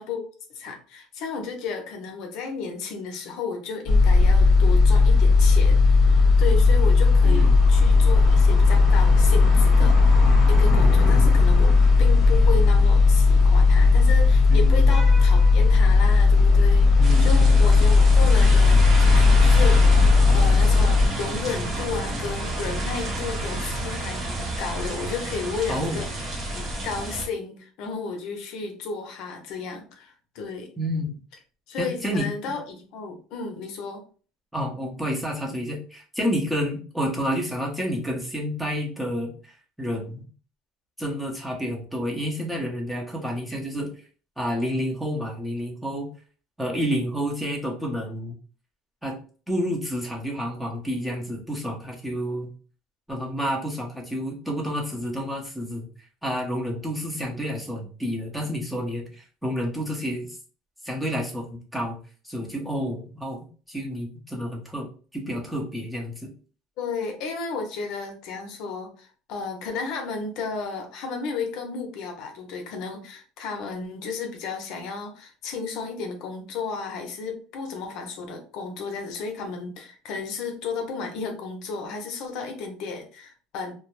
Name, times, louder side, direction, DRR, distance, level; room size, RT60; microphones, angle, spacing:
voice 1, 0.0-30.7 31.7-34.0 66.8-83.7, left 4 dB, 65° left, 3 dB, 0.6 m, -33 dB
sound 1, 3.9-21.1, left 4 dB, 25° left, 0.9 m, -16 dB
voice 2, 7.2-7.6 14.5-14.9 17.0-17.5 25.7-26.0 30.8-31.1 31.8-32.3 34.5-40.2 41.0-43.9 44.4-46.1 46.6-48.4 49.0-49.2 49.5-52.5 53.1-55.9 56.2-60.3 60.8-62.0 62.2-64.9 65.1-66.3, equal, 5° right, -2 dB, 0.7 m, -29 dB
sound 2, 17.0-27.3, right 1 dB, 35° right, 0.8 m, -29 dB
2.2 x 2.0 x 3.0 m, 0.39 s
supercardioid pair, 125°, 0 cm